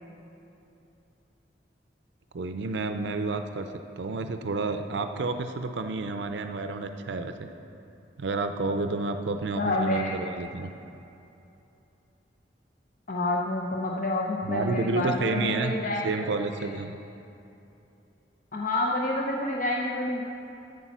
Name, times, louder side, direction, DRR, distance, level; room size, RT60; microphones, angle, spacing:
voice 1, 2.3-3.7 4.0-7.5 8.2-10.7 14.4-15.7 16.0-17.0, right 3 dB, 75° right, 7 dB, 0.5 m, -30 dB
voice 2, 9.6-10.1 13.1-16.0 18.5-20.2, left 2 dB, 50° left, -2 dB, 0.7 m, -28 dB
8.4 x 8.3 x 6.0 m, 2.8 s
head